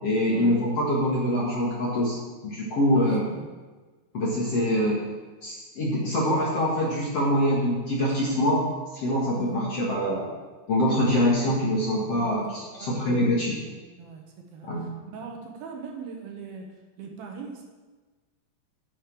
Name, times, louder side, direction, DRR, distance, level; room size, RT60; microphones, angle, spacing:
voice 1, 0.0-2.2 2.4-3.3 4.1-5.0 5.4-8.6 8.9-10.3 10.7-13.5 14.7-14.8, equal, 50° left, -5 dB, 2.1 m, -24 dB
voice 2, 2.9-3.5 9.3-9.7 12.1-14.9 15.1-17.6, right 5 dB, 70° right, 2 dB, 2.7 m, -41 dB
10.0 x 6.5 x 7.6 m, 1.3 s
omnidirectional pair, 4.8 m